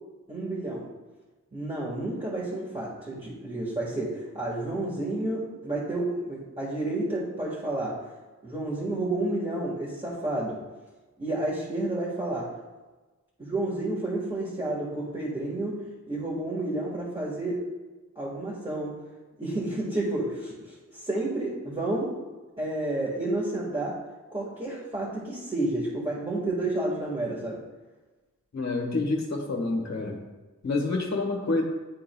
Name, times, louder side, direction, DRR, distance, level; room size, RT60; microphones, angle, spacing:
voice 1, 0.3-0.9 1.5-7.9 8.4-10.6 11.2-12.5 13.4-15.8 16.1-17.6 18.1-18.9 19.4-22.1 22.6-24.0 24.3-27.6, right 2 dB, 20° right, -7 dB, 1.6 m, -30 dB
voice 2, 28.5-30.2 30.6-31.6, left 3 dB, 55° left, 1 dB, 1.5 m, -28 dB
11.0 x 3.8 x 2.3 m, 1.2 s
wide cardioid pair, 60°, 32 cm